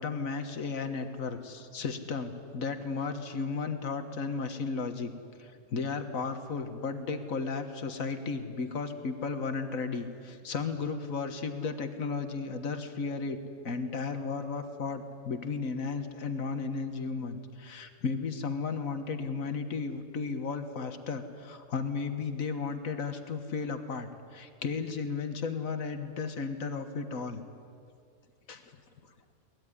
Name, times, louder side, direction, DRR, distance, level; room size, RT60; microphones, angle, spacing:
voice 1, 0.0-5.1 5.4-13.4 13.6-27.4 28.5-28.6, left 4 dB, 85° left, 8 dB, 1.8 m, -34 dB
23.0 x 19.0 x 9.8 m, 2.3 s
omnidirectional pair, 1.4 m